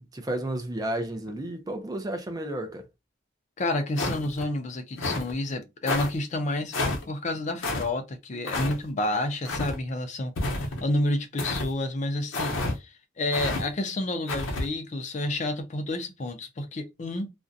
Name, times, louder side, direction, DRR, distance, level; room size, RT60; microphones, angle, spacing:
voice 1, 0.0-2.8, right 1 dB, 20° right, 0.5 m, -32 dB
voice 2, 3.6-6.7 7.1-17.3, left 1 dB, 35° left, 0.5 m, -30 dB
sound 1, 4.0-4.4 5.0-5.3 5.9-6.1 6.7-7.0 7.6-7.8 8.5-8.7 9.4-9.8 10.4-10.8 11.4-11.7 12.3-12.7 13.3-13.6 14.3-14.6, left 2 dB, 80° left, 0.8 m, -29 dB
2.4 x 2.1 x 2.5 m
head